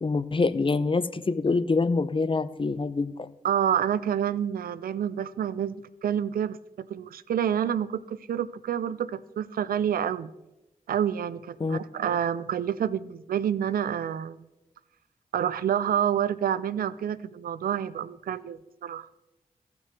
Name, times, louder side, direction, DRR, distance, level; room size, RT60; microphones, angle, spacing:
voice 1, 0.0-3.3 11.6-11.8, left 3 dB, 35° left, 14 dB, 0.6 m, -25 dB
voice 2, 3.4-5.7 6.0-10.3 10.9-14.4 15.3-19.1, right 9 dB, 80° right, 17 dB, 0.4 m, -28 dB
17.0 x 5.9 x 3.2 m, 0.97 s
cardioid pair, 40°, 15 cm